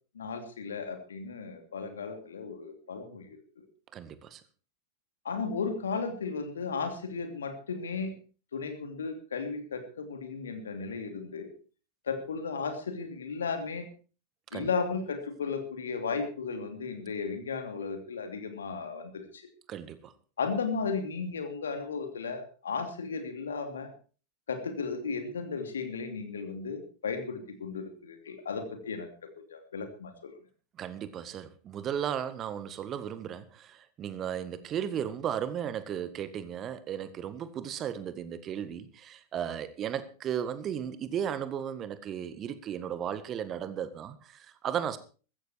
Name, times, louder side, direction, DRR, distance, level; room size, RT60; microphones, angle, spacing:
voice 1, 0.1-3.4 5.2-8.1 8.5-11.5 12.1-13.9 14.5-19.4 20.4-23.9 24.5-29.1 29.5-30.3, left 5 dB, 70° left, 7 dB, 3.0 m, -35 dB
voice 2, 3.9-4.4 14.5-14.7 19.7-20.1 30.8-45.0, right 9 dB, 30° right, 13 dB, 1.6 m, -35 dB
15.0 x 14.0 x 4.6 m, 0.37 s
figure-of-eight pair, 90°, 0 cm